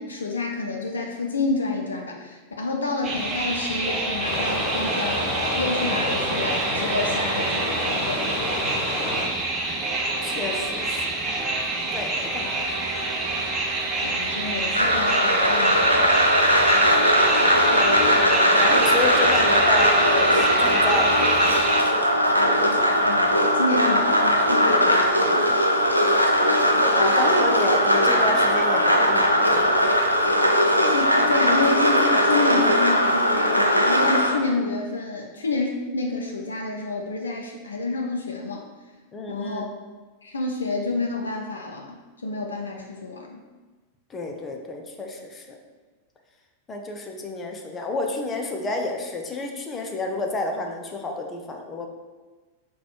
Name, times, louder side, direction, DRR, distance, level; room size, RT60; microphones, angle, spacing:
voice 1, 0.0-8.4 14.0-16.0 22.0-25.4 30.9-38.6 39.3-39.7 40.2-43.4, left 3 dB, 70° left, 1 dB, 0.4 m, -29 dB
sound 1, 3.0-21.8, right 2 dB, 25° right, 0.8 m, -27 dB
Stream, 4.2-9.3, left 1 dB, 40° left, 0.9 m, -29 dB
voice 2, 10.2-11.5 11.9-12.5 16.7-17.1 17.7-21.3 26.8-29.8 39.1-39.7 44.1-45.6 46.7-51.9, left 2 dB, 20° left, 2 dB, 0.5 m, -30 dB
sound 2, 14.7-34.3, equal, 90° right, 0.4 m, -19 dB
4.0 x 2.3 x 4.4 m, 1.3 s
figure-of-eight pair, 90°, 0 cm